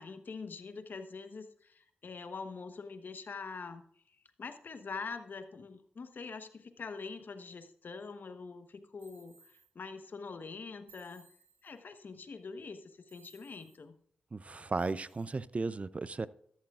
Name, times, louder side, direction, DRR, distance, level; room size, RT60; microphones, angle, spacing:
voice 1, 0.0-3.8 4.1-11.3 11.6-13.9, left 4 dB, 60° left, 8 dB, 1.1 m, -44 dB
sound 1, 9.0-9.7 10.9-11.8 13.1-13.8 14.8-15.4, right 4 dB, 65° right, 4.6 m, -62 dB
voice 2, 14.3-16.3, right 3 dB, 35° right, 17 dB, 0.5 m, -35 dB
13.5 x 11.5 x 2.4 m, 0.66 s
cardioid pair, 50°, 4 cm